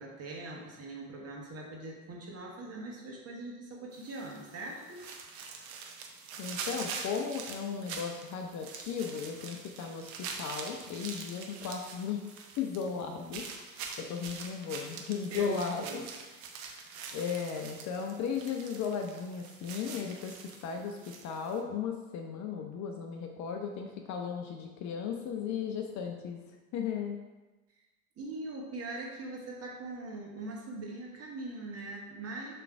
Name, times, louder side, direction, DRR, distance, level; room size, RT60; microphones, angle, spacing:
voice 1, 0.0-5.0 15.3-16.0 28.2-32.5, right 2 dB, 30° right, -1 dB, 1.7 m, -41 dB
sound 1, 3.9-21.6, right 5 dB, 65° right, 1.0 m, -44 dB
voice 2, 6.4-12.2 12.6-16.0 17.1-20.4 20.6-26.4 26.7-27.2, left 6 dB, 40° left, 3 dB, 0.7 m, -36 dB
7.0 x 3.4 x 4.6 m, 1.2 s
figure-of-eight pair, 70°, 46 cm